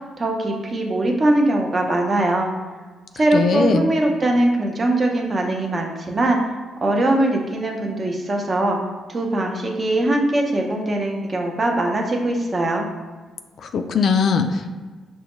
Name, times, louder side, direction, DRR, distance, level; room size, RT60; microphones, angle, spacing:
voice 1, 0.2-2.5 3.1-6.4 6.8-8.8 9.1-12.9, right 1 dB, 35° right, 1 dB, 0.6 m, -21 dB
voice 2, 3.3-3.9 13.6-14.7, left 5 dB, 60° left, 7 dB, 0.3 m, -20 dB
5.3 x 2.2 x 3.0 m, 1.3 s
cardioid pair, 90°, 0 cm